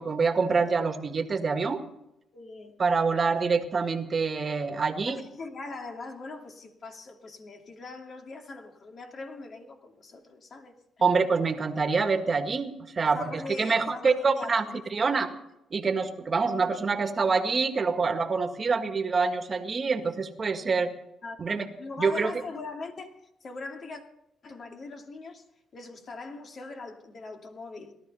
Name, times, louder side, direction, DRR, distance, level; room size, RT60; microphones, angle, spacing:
voice 1, 0.0-1.8 2.8-5.2 11.0-13.2 13.6-14.6 14.9-15.3 15.7-20.9 21.4-21.7 22.0-22.3, right 4 dB, 35° right, 1.8 m, -26 dB
voice 2, 2.3-2.7 5.1-10.8 13.0-14.9 21.2-21.4 21.8-24.0 24.4-25.4 25.7-27.9, left 3 dB, 50° left, 2.6 m, -41 dB
18.0 x 12.5 x 5.6 m
cardioid pair, 90°, 0 cm